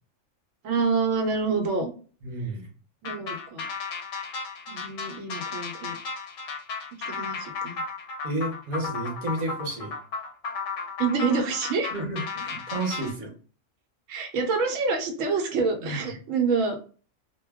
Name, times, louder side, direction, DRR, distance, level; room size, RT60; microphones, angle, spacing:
voice 1, 0.6-1.9 3.0-3.7 4.7-6.0 7.1-7.8 11.0-11.9 14.1-16.8, right 4 dB, 85° right, 3 dB, 1.0 m, -27 dB
voice 2, 2.2-2.7 8.2-9.9 11.9-13.3 15.8-16.0, right 2 dB, 45° right, 0 dB, 0.9 m, -31 dB
sound 1, 3.0-13.1, left 4 dB, 65° left, 0.7 m, -34 dB
2.2 x 2.2 x 3.4 m, 0.38 s
omnidirectional pair, 1.3 m